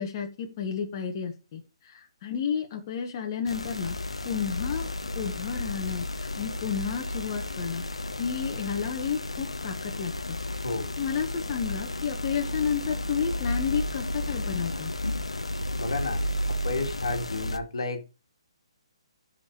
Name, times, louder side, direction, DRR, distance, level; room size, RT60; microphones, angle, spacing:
voice 1, 0.0-1.6 1.9-4.0 4.2-4.9 5.1-7.8 8.2-10.4 11.0-14.9, left 7 dB, 35° left, 1.6 m, -31 dB
sound 1, 3.5-17.6, left 1 dB, 90° left, 0.9 m, -32 dB
voice 2, 15.8-16.2 16.5-18.0, left 3 dB, 65° left, 2.0 m, -32 dB
13.0 x 4.5 x 4.7 m
figure-of-eight pair, 140°, 3 cm